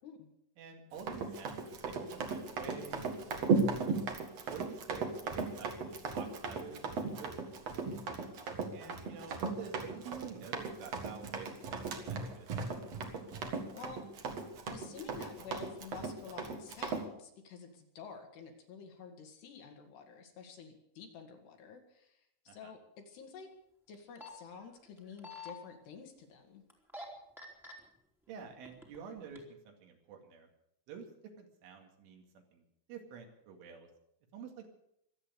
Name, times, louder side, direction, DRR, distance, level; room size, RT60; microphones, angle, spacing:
voice 1, 0.6-3.4 3.7-4.0 4.5-5.1 5.4-7.4 8.7-12.5 22.5-22.7 28.3-30.5 30.9-31.1 31.4-32.6 32.9-33.9 34.3-34.7, right 6 dB, 80° right, 3 dB, 4.6 m, -49 dB
Run, 1.0-17.0, right 4 dB, 55° right, 1.9 m, -36 dB
voice 2, 14.7-22.2 22.5-22.8 23.1-23.5 23.9-26.6, left 6 dB, 65° left, 4 dB, 3.7 m, -50 dB
sound 1, 23.9-24.3 25.0-25.5 26.7-27.0 27.4-27.7 28.5-29.0 29.4-29.5, left 2 dB, ahead, 1.9 m, -46 dB
24.5 x 8.7 x 6.8 m, 0.77 s
omnidirectional pair, 5.6 m